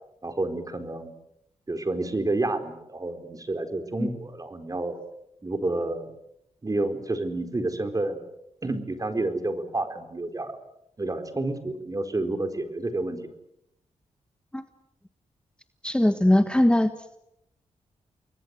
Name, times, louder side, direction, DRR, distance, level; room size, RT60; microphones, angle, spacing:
voice 1, 0.2-1.1 1.7-5.0 5.4-6.1 6.6-8.2 8.6-10.6 11.0-13.3, right 2 dB, 30° right, 7 dB, 4.2 m, -29 dB
voice 2, 15.8-16.9, left 1 dB, 10° left, 9 dB, 1.4 m, -20 dB
30.0 x 21.5 x 8.1 m, 0.81 s
cardioid pair, 75°, 12 cm